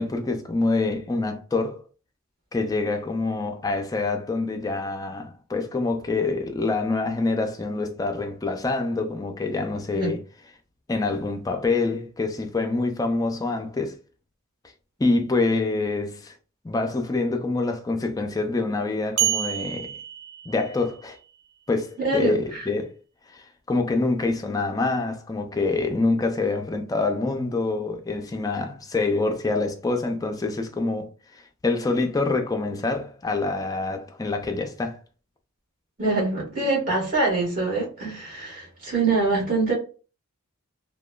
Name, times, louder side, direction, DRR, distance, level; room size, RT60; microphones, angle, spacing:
voice 1, 0.0-1.8 2.5-10.2 10.9-14.0 15.0-16.3 16.6-19.9 20.5-21.2 21.7-22.9 23.3-35.0, left 3 dB, 15° left, 0.3 m, -26 dB
sound 1, 19.2-21.0, right 12 dB, 90° right, 0.3 m, -28 dB
voice 2, 22.0-22.6 36.0-39.7, right 3 dB, 40° right, 1.5 m, -24 dB
2.9 x 2.2 x 2.2 m
head